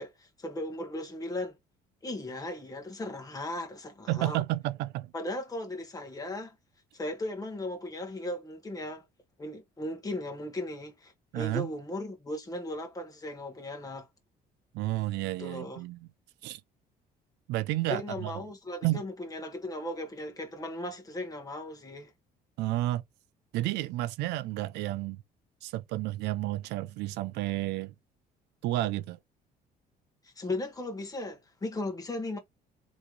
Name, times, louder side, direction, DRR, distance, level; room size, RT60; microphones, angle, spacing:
voice 1, 0.0-1.5 2.0-4.4 5.1-6.5 6.9-9.0 9.4-14.1 15.4-15.8 17.9-22.1 30.2-32.4, left 1 dB, 20° left, 1.5 m, -37 dB
voice 2, 4.1-5.1 11.3-11.7 14.7-16.1 16.4-16.6 17.5-18.3 18.8-19.0 22.6-23.0 23.5-25.2 25.6-27.9 28.6-29.2, right 16 dB, 90° right, 0.5 m, -31 dB
3.4 x 3.1 x 3.8 m
cardioid pair, 110°, 17 cm